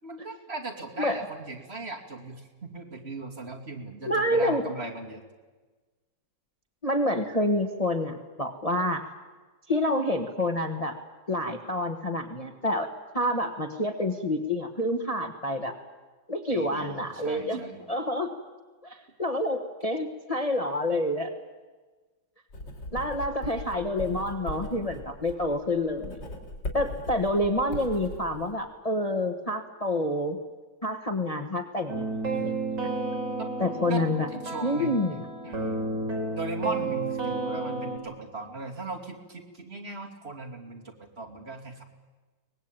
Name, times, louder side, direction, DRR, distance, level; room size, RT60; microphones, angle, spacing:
voice 1, 0.0-5.2 16.5-17.8 33.4-33.5 33.9-34.0 34.3-35.1 35.4-41.8, right 2 dB, 35° right, 0 dB, 3.0 m, -38 dB
voice 2, 4.1-4.6 6.8-9.0 9.7-10.9 11.3-12.9 13.1-15.7 16.3-17.6 17.9-18.3 18.8-21.3 22.9-26.2 26.7-30.4 30.8-32.9 33.6-34.3 34.6-35.2, left 1 dB, 20° left, 4 dB, 1.4 m, -28 dB
Writing, 22.5-28.5, left 1 dB, 85° left, 4.0 m, -39 dB
sound 1, 31.9-38.0, right 3 dB, 70° right, 4.8 m, -31 dB
24.0 x 19.5 x 9.0 m, 1.3 s
omnidirectional pair, 1.9 m